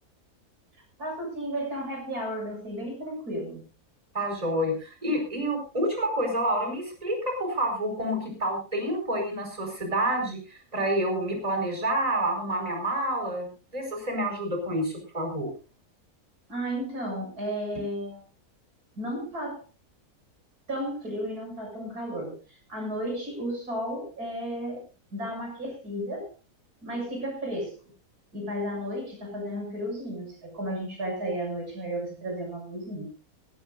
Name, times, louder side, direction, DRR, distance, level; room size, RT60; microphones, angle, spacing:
voice 1, 1.0-3.7 16.5-18.2 18.9-19.6 20.7-24.8 25.1-26.3 26.8-27.8 28.3-33.1, equal, 85° right, 2 dB, 7.5 m, -33 dB
voice 2, 4.1-15.5, right 1 dB, 25° right, 2 dB, 5.1 m, -28 dB
18.5 x 18.0 x 2.6 m, 0.33 s
omnidirectional pair, 1.6 m